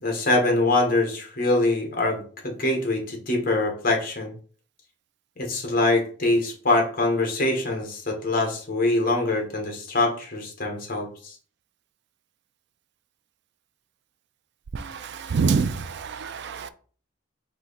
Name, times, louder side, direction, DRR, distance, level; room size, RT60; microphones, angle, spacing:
voice 1, 0.0-4.3 5.4-11.3, left 2 dB, 50° left, 1.3 m, -24 dB
voice 2, 14.7-16.7, right 5 dB, 65° right, 0.4 m, -26 dB
4.5 x 2.8 x 3.9 m
head